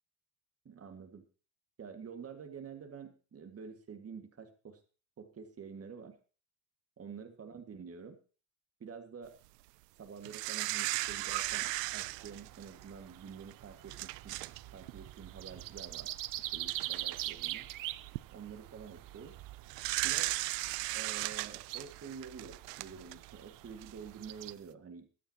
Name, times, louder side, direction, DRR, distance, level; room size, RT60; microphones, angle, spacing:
voice 1, 0.7-1.3 1.8-4.8 5.2-6.2 7.0-8.2 8.8-9.4 10.0-14.4 14.7-16.1 16.4-17.7 18.3-19.4 20.0-20.3 20.9-25.1, right 6 dB, 30° right, 6 dB, 1.9 m, -48 dB
sound 1, 10.2-12.9 13.5-13.6 13.9-14.6 14.9-15.1 16.2-16.3 16.7-17.2 17.9-18.2 19.7-23.3 23.8-23.9, right 20 dB, 85° right, 0.6 m, -36 dB
sound 2, 11.0-24.5, right 15 dB, 45° right, 0.6 m, -45 dB
22.0 x 9.4 x 2.9 m, 0.37 s
supercardioid pair, 85°, 47 cm